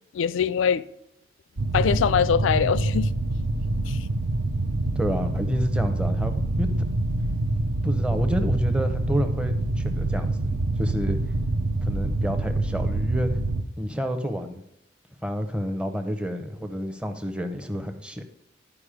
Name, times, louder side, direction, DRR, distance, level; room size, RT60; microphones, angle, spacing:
voice 1, 0.1-0.8 1.7-3.1 3.9-4.0, left 7 dB, 80° left, 0.4 m, -23 dB
sound 1, 1.6-13.6, right 2 dB, 80° right, 0.7 m, -26 dB
voice 2, 5.0-6.7 7.8-10.5 10.8-11.2 11.8-13.3 13.8-14.6 15.2-18.2, equal, 5° right, 0.7 m, -29 dB
11.5 x 5.1 x 5.0 m
head